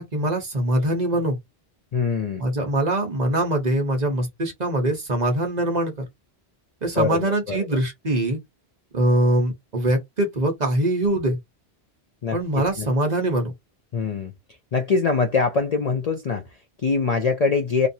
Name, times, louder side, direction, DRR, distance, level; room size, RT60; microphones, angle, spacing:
voice 1, 0.0-1.4 2.4-6.0 6.8-8.4 8.9-11.4 12.3-13.5, right 1 dB, 45° right, 1.0 m, -23 dB
voice 2, 1.9-2.4 6.9-7.8 12.2-12.9 13.9-14.3 14.7-17.9, left 4 dB, 50° left, 0.5 m, -24 dB
2.9 x 2.5 x 2.7 m
omnidirectional pair, 1.1 m